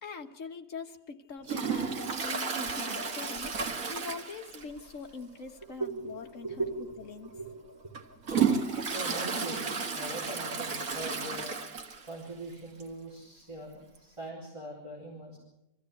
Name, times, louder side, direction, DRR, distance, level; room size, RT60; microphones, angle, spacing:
voice 1, 0.0-3.5 3.9-6.6 7.0-7.3, left 5 dB, 60° left, 6 dB, 1.6 m, -43 dB
Toilet flush, 1.4-4.9 5.2-5.3 5.7-5.8 6.6-6.8 7.3-12.2 12.5-12.6 12.8-12.9 14.0-14.1, right 5 dB, 65° right, 2.1 m, -32 dB
voice 2, 5.8-7.0 7.3-7.5 8.9-11.5 12.1-15.4, right 2 dB, 20° right, -2 dB, 4.1 m, -40 dB
23.0 x 14.5 x 8.4 m, 0.87 s
omnidirectional pair, 1.6 m